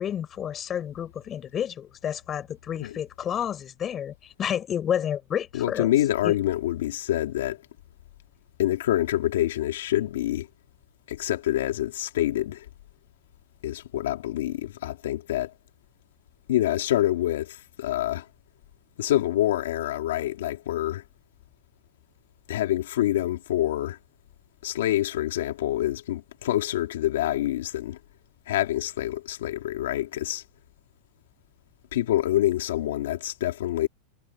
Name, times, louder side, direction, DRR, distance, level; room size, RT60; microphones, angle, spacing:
voice 1, 0.0-5.9 6.2-6.3, left 9 dB, 25° left, 6.1 m, -30 dB
voice 2, 5.5-7.6 8.6-10.5 11.1-12.7 13.6-15.5 16.5-18.3 19.0-21.0 22.5-24.0 24.6-28.0 28.5-30.4 31.9-33.9, left 13 dB, 85° left, 2.3 m, -26 dB
supercardioid pair, 140°, 0 cm